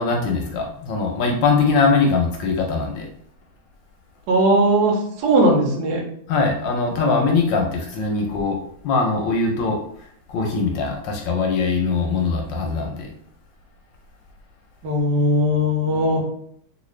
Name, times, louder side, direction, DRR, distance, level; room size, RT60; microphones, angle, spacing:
voice 1, 0.0-3.1 6.3-8.6 8.8-9.8 10.3-13.1, left 4 dB, 75° left, 1 dB, 1.1 m, -21 dB
voice 2, 4.3-6.0 14.8-16.2, right 1 dB, 65° right, 0 dB, 1.3 m, -18 dB
3.2 x 2.6 x 3.1 m, 0.67 s
omnidirectional pair, 2.3 m